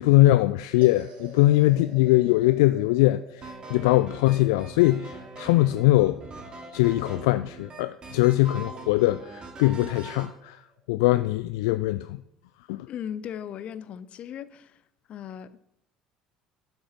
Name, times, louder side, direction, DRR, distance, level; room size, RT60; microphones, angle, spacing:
voice 1, 0.0-6.2 6.7-10.6 10.9-12.2 12.7-12.9, left 17 dB, 65° left, 0.3 m, -22 dB
sound 1, 0.8-11.2, right 2 dB, 55° right, 3.2 m, -51 dB
sound 2, 3.4-10.3, right 3 dB, 35° right, 2.6 m, -42 dB
voice 2, 12.9-14.8 15.1-15.6, left 9 dB, 45° left, 0.7 m, -37 dB
12.0 x 7.9 x 6.1 m
figure-of-eight pair, 60°, 3 cm